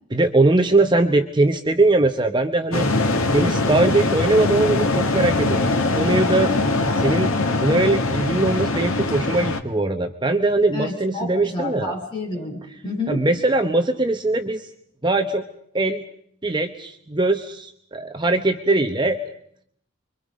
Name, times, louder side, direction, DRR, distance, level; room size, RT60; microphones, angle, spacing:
voice 1, 0.1-2.9 3.3-5.6 5.9-6.5 6.9-7.3 7.6-11.9 13.1-14.7 15.0-15.4 15.7-16.0 16.4-19.2, right 2 dB, 20° right, 6 dB, 1.0 m, -21 dB
sound 1, 2.7-9.6, left 2 dB, 80° left, 2.2 m, -22 dB
voice 2, 10.7-13.3, left 2 dB, 25° left, -1 dB, 6.3 m, -30 dB
29.5 x 24.0 x 5.2 m, 0.67 s
head